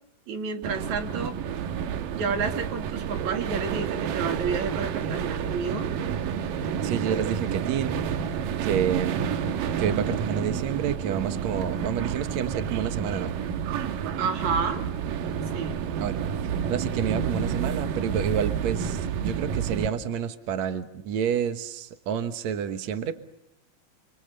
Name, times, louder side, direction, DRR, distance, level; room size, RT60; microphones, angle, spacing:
voice 1, 0.3-1.4 2.1-5.9 14.2-14.8 15.5-15.9, right 5 dB, 45° right, 6 dB, 3.1 m, -30 dB
sound 1, 0.6-19.9, right 7 dB, 65° right, 2.3 m, -29 dB
voice 2, 6.8-8.0 8.6-9.4 9.8-13.3 16.0-16.2 16.7-23.1, right 8 dB, 85° right, 9 dB, 1.5 m, -29 dB
28.5 x 27.5 x 6.7 m, 0.78 s
omnidirectional pair, 5.4 m